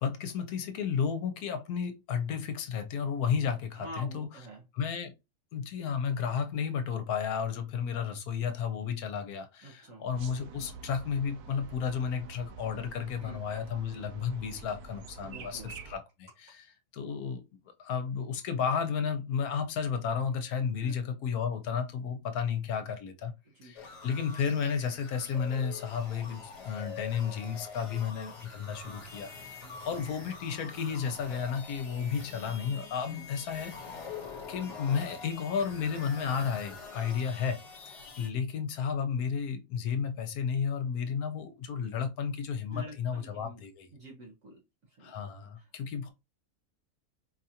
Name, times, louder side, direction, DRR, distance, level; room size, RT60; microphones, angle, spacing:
voice 1, 0.0-4.3 4.7-5.1 5.5-16.6 16.9-17.4 17.8-23.3 23.6-29.6 29.8-34.2 34.5-37.6 37.9-43.9 45.0-46.1, left 7 dB, 75° left, 1.2 m, -33 dB
voice 2, 3.8-4.6 9.6-10.0 13.2-13.4 15.2-15.7 20.8-21.0 23.5-23.7 29.6-30.0 33.1-33.3 38.1-38.2 42.7-43.6 43.9-44.6 44.9-45.3 45.6-45.7, equal, 60° right, 1.4 m, -47 dB
sound 1, 10.1-16.0, right 5 dB, 85° right, 1.2 m, -47 dB
sound 2, 23.8-38.3, left 5 dB, 50° left, 1.4 m, -45 dB
4.5 x 2.5 x 2.8 m
omnidirectional pair, 1.6 m